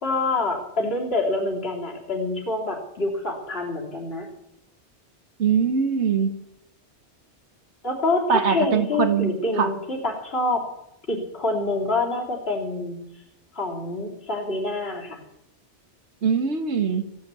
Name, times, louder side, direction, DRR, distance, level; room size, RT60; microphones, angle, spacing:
voice 1, 0.0-4.3 7.8-10.7 11.1-13.0 13.5-15.2, left 2 dB, 60° left, -1 dB, 3.3 m, -26 dB
voice 2, 5.4-6.3 8.3-9.7 16.2-17.0, right 6 dB, 75° right, 10 dB, 1.7 m, -22 dB
16.0 x 10.5 x 8.2 m, 0.83 s
omnidirectional pair, 1.2 m